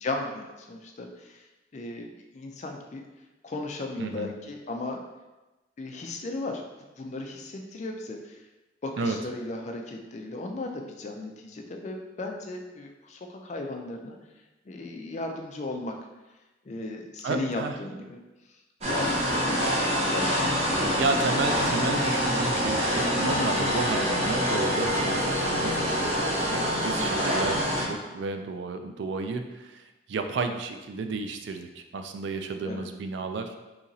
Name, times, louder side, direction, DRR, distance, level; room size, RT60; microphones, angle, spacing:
voice 1, 0.0-1.3 1.7-2.1 2.3-3.0 3.4-5.0 5.8-6.6 7.0-8.4 8.8-14.2 14.7-15.9 16.7-18.2 18.8-20.9 27.0-27.1 27.4-27.6 32.6-32.9, left 2 dB, 40° left, 3 dB, 0.4 m, -36 dB
voice 2, 4.0-4.3 9.0-9.2 17.2-17.8 21.0-26.1 26.5-29.8 30.1-33.5, right 3 dB, 70° right, 6 dB, 0.3 m, -32 dB
sound 1, 18.8-27.8, equal, 35° right, 0.7 m, -26 dB
3.9 x 2.9 x 2.7 m, 1.1 s
head